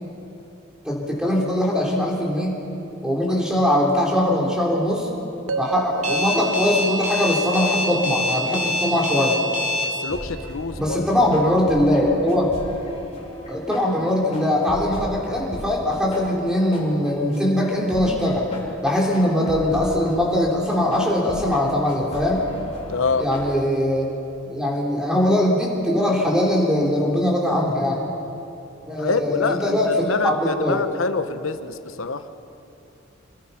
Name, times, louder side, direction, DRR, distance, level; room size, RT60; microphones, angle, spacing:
voice 1, 0.8-2.6 3.0-5.1 5.6-9.4 10.8-12.5 13.5-18.5 18.8-22.5 23.2-24.1 24.4-28.0 28.9-30.8, left 1 dB, 5° right, -3 dB, 3.7 m, -21 dB
sound 1, 5.5-9.6, right 2 dB, 90° right, 0.8 m, -32 dB
Alarm, 6.0-9.8, left 2 dB, 40° right, 4.3 m, -24 dB
voice 2, 9.9-11.1 22.9-23.2 29.0-32.3, left 4 dB, 90° left, 10 dB, 1.0 m, -26 dB
sound 2, 10.1-23.5, left 1 dB, 30° left, 3.6 m, -37 dB
27.0 x 21.5 x 5.8 m, 2.9 s
head